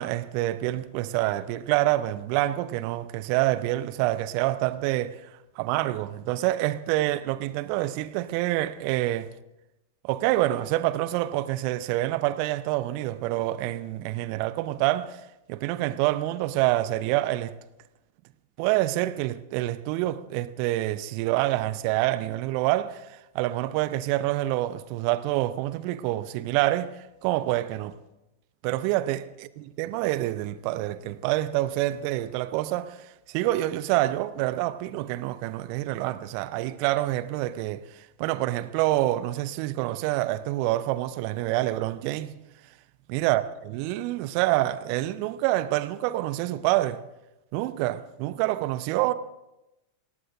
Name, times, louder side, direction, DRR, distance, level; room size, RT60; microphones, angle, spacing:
voice 1, 0.0-9.3 10.0-15.2 15.5-17.5 18.6-27.9 28.6-29.3 29.6-42.3 43.1-47.0 47.5-49.1, right 16 dB, 45° right, 0.8 m, -27 dB
27.0 x 18.5 x 2.6 m
figure-of-eight pair, 90°, 0 cm